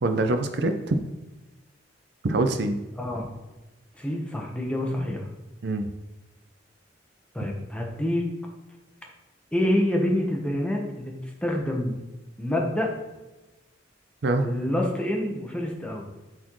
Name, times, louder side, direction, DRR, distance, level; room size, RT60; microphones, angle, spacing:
voice 1, 0.0-1.0 2.2-2.8 5.6-5.9 14.2-14.5, right 2 dB, 55° right, 7 dB, 0.5 m, -24 dB
voice 2, 3.0-3.3 4.0-5.3 7.3-8.2 9.5-11.1 11.4-12.0 12.4-12.9 14.4-16.0, left 1 dB, 5° left, -1 dB, 1.1 m, -27 dB
12.0 x 4.2 x 3.1 m, 1.1 s
head